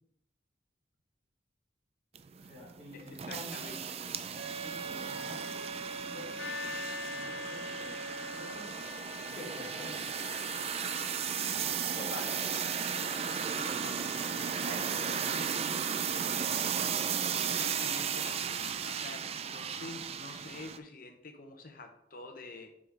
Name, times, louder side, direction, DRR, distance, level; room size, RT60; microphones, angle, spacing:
sound 1, 2.2-20.8, right 7 dB, 35° right, 0.4 m, -35 dB
voice 1, 2.4-3.7 4.5-8.9 9.3-10.2 13.4-14.0 14.3-17.0, equal, 5° right, -11 dB, 2.6 m, -49 dB
voice 2, 2.9-3.8 8.5-8.6 11.9-12.4 13.6-13.9 17.4-22.7, left 3 dB, 55° left, 6 dB, 1.0 m, -47 dB
Wind instrument woodwind instrument, 4.3-8.8, right 3 dB, 80° right, 1.2 m, -43 dB
sound 2, 6.4-17.0, left 7 dB, 85° left, 0.4 m, -46 dB
5.9 x 5.0 x 4.7 m, 0.77 s
head